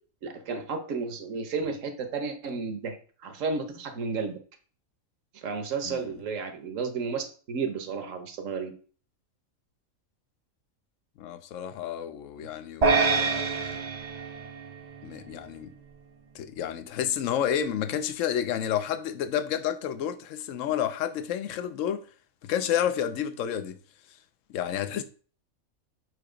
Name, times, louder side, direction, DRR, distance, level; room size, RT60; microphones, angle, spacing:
voice 1, 0.2-3.0 3.2-4.4 5.3-8.7 12.4-12.5, right 5 dB, 65° right, 1.3 m, -32 dB
voice 2, 11.2-13.8 15.0-15.7 16.3-22.0 22.4-23.8 24.5-25.0, left 9 dB, 70° left, 1.0 m, -30 dB
sound 1, 12.8-15.3, right 4 dB, 50° right, 0.5 m, -26 dB
7.6 x 2.9 x 5.0 m
omnidirectional pair, 1.5 m